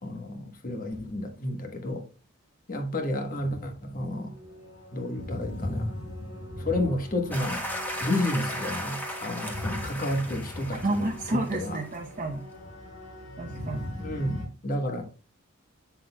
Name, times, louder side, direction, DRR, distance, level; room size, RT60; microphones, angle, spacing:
voice 1, 0.0-2.0 2.7-4.3 4.9-5.9 6.6-7.6 8.0-11.8 14.0-15.0, left 1 dB, 40° left, 1.2 m, -31 dB
sound 1, 3.4-14.5, left 1 dB, 60° left, 2.3 m, -39 dB
sound 2, 7.3-12.0, equal, 10° left, 1.4 m, -36 dB
voice 2, 10.8-12.5 13.4-13.9, right 2 dB, 40° right, 0.7 m, -31 dB
8.0 x 6.3 x 2.2 m
head